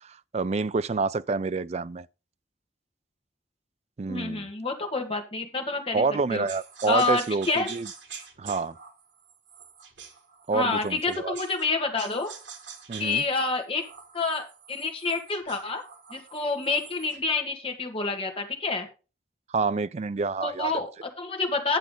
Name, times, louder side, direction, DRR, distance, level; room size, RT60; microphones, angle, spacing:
voice 1, 0.0-2.1 4.0-4.5 5.9-7.9 8.4-8.8 10.5-11.3 12.9-13.2 19.5-20.7, right 4 dB, 35° right, 0.4 m, -28 dB
voice 2, 4.1-6.1 6.3-6.5 6.9-7.7 10.5-12.3 13.0-13.8 14.1-15.8 16.1-18.9 20.4-21.8, left 3 dB, 30° left, 1.8 m, -28 dB
sound 1, 6.5-11.7 12.0-17.3, right 6 dB, 85° right, 2.0 m, -46 dB
10.0 x 7.5 x 3.8 m
head